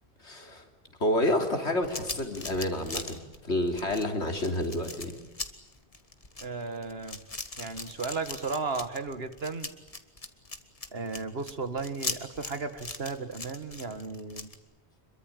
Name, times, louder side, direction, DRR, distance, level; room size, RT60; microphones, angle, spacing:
voice 1, 0.2-0.6 1.0-3.2 3.4-5.1, left 1 dB, 80° left, 5 dB, 3.4 m, -29 dB
sound 1, 1.8-14.6, left 3 dB, 30° left, 1.8 m, -39 dB
voice 2, 6.4-7.2 7.6-9.7 10.9-14.5, right 4 dB, 65° right, 11 dB, 1.9 m, -35 dB
26.5 x 23.0 x 9.1 m, 1.0 s
omnidirectional pair, 1.1 m